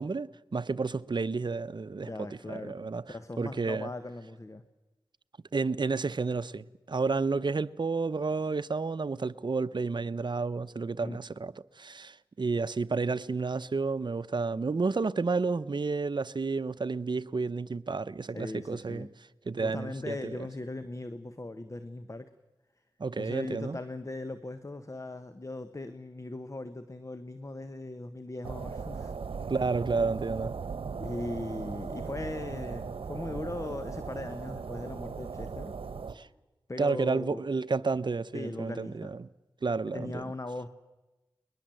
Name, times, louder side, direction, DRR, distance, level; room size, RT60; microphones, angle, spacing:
voice 1, 0.0-2.1 2.5-3.9 5.5-19.1 19.5-20.4 23.0-23.8 29.5-30.6 36.1-36.3 36.8-39.3 39.6-40.3, right 4 dB, 55° right, 0.7 m, -31 dB
voice 2, 2.0-2.8 3.1-4.6 11.0-11.2 18.3-19.1 19.6-22.3 23.2-29.1 31.0-35.7 36.7-37.4 38.3-39.1 39.9-40.7, left 2 dB, 35° left, 1.3 m, -39 dB
sound 1, 28.4-36.1, right 5 dB, 85° right, 1.0 m, -38 dB
21.5 x 21.5 x 7.7 m
cardioid pair, 45°, 9 cm